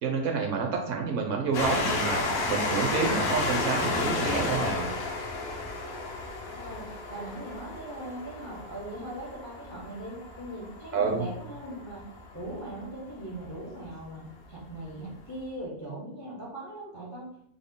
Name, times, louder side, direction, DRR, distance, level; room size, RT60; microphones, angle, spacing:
voice 1, 0.0-4.9 10.9-11.3, right 5 dB, 70° right, 1 dB, 0.9 m, -28 dB
Train, 1.5-12.7 13.4-13.5 13.8-13.9, left 3 dB, 65° left, 0.6 m, -32 dB
voice 2, 6.4-12.0 12.3-17.3, right 1 dB, 25° left, -3 dB, 0.3 m, -40 dB
3.5 x 2.0 x 3.6 m, 0.73 s
omnidirectional pair, 1.5 m